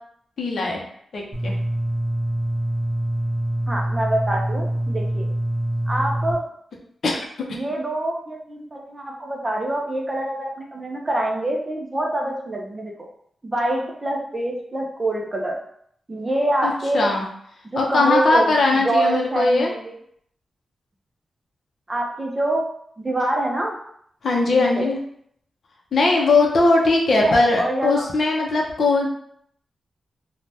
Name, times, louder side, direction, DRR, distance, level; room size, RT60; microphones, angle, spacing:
voice 1, 0.4-0.8 1.1-1.5 7.0-7.5 16.6-17.3 17.8-19.7 24.2-25.0 25.9-29.1, left 3 dB, 55° left, 0 dB, 0.6 m, -20 dB
sound 1, 1.3-6.3, right 1 dB, 35° right, 0.8 m, -25 dB
voice 2, 3.7-5.3 5.9-6.4 7.5-13.1 13.4-15.6 16.1-17.1 17.7-18.5 18.8-19.9 21.9-22.6 23.0-23.8 24.5-24.9 27.2-28.0, right 1 dB, 20° right, 0 dB, 0.4 m, -25 dB
2.7 x 2.1 x 3.3 m, 0.67 s
wide cardioid pair, 155°, 0 cm